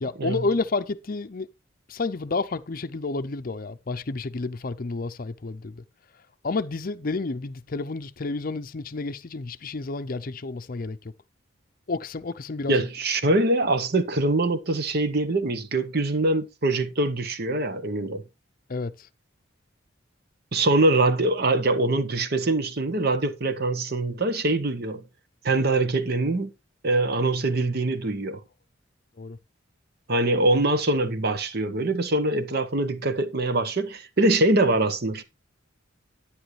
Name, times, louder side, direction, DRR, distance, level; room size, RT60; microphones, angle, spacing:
voice 1, 0.0-1.5 1.9-5.8 6.4-11.0 11.9-12.8 18.7-19.1 29.2-29.4, left 3 dB, 45° left, 0.6 m, -30 dB
voice 2, 12.7-18.2 20.5-25.0 25.4-26.5 26.8-28.4 30.1-35.2, right 2 dB, 50° right, 1.0 m, -23 dB
10.5 x 9.8 x 3.2 m
head